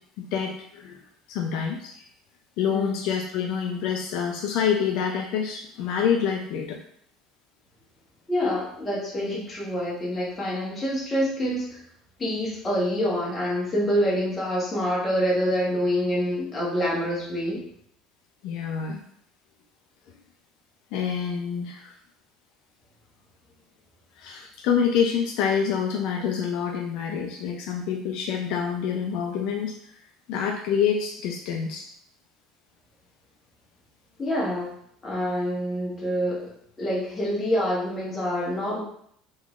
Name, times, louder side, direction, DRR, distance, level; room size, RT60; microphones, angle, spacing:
voice 1, 0.2-1.0 1.3-2.0 2.6-6.8 18.4-19.0 20.9-21.9 24.2-29.9 30.3-31.9 38.5-38.6, left 7 dB, 60° left, 1 dB, 0.4 m, -27 dB
voice 2, 8.3-11.8 12.2-17.7 34.2-34.8 35.0-36.5 36.8-38.8, equal, 15° left, -5 dB, 1.1 m, -26 dB
3.7 x 3.0 x 2.4 m, 0.67 s
cardioid pair, 160°, 0 cm